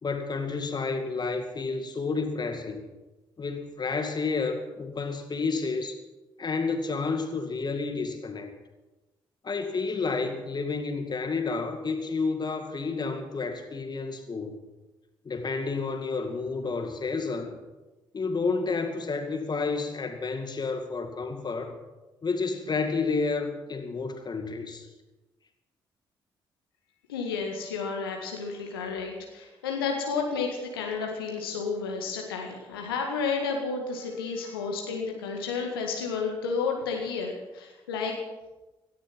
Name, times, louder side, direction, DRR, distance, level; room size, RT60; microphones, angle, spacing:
voice 1, 0.0-2.8 3.4-5.9 6.4-8.5 9.4-14.6 15.2-17.6 18.1-21.8 22.2-24.9, left 4 dB, 35° left, 6 dB, 2.3 m, -30 dB
voice 2, 27.1-38.1, left 5 dB, 80° left, 1 dB, 1.8 m, -31 dB
17.5 x 13.5 x 6.0 m, 1.1 s
figure-of-eight pair, 40°, 12 cm